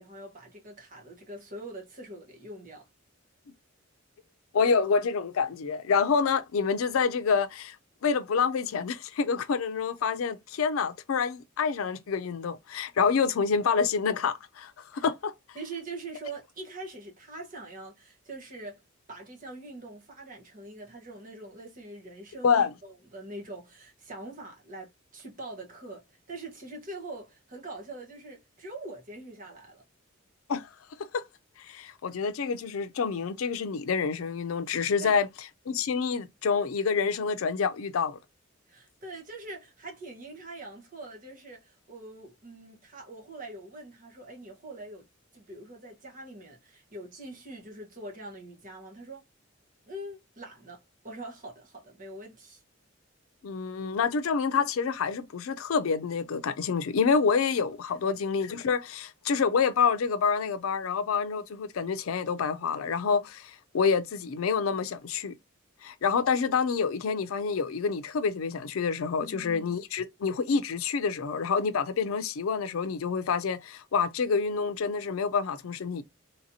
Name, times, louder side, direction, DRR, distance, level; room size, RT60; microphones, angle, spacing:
voice 1, 0.0-2.9 14.9-15.0 15.5-18.8 19.1-29.8 35.0-35.2 38.7-45.0 45.3-49.2 49.9-52.6 53.8-54.0 58.0-58.2 69.2-69.8, right 2 dB, 40° right, 1.1 m, -43 dB
voice 2, 4.5-7.8 8.0-15.3 22.4-22.7 30.5-30.7 31.0-31.2 31.6-35.3 35.7-38.2 53.4-65.3 65.8-76.0, left 5 dB, 90° left, 0.4 m, -27 dB
3.1 x 2.8 x 2.7 m
head